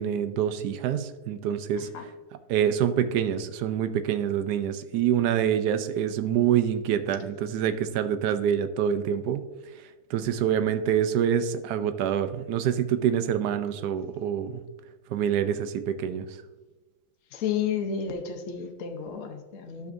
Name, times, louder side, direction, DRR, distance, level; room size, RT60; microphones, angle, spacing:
voice 1, 0.0-1.9 2.5-9.5 10.1-14.6 15.1-16.4, right 9 dB, 70° right, 11 dB, 1.1 m, -26 dB
voice 2, 17.3-19.9, left 7 dB, 55° left, 3 dB, 1.1 m, -31 dB
12.0 x 7.0 x 2.6 m, 1.2 s
omnidirectional pair, 1.9 m